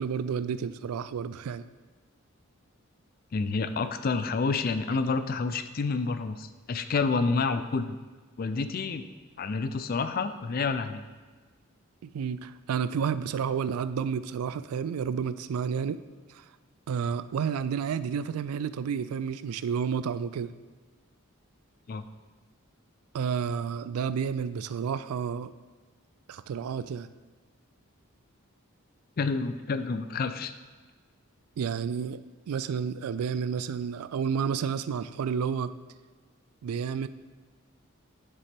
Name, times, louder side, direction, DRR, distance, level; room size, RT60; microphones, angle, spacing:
voice 1, 0.0-1.6 12.0-16.0 16.3-16.4 16.9-20.5 23.1-25.5 26.3-27.1 31.6-32.2 32.5-35.7 36.6-37.1, right 6 dB, 85° right, 14 dB, 0.3 m, -30 dB
voice 2, 3.3-8.0 8.4-9.1 9.4-11.0 21.9-22.0 29.2-30.5, left 4 dB, 40° left, 11 dB, 0.4 m, -29 dB
7.3 x 6.7 x 3.5 m, 1.4 s
head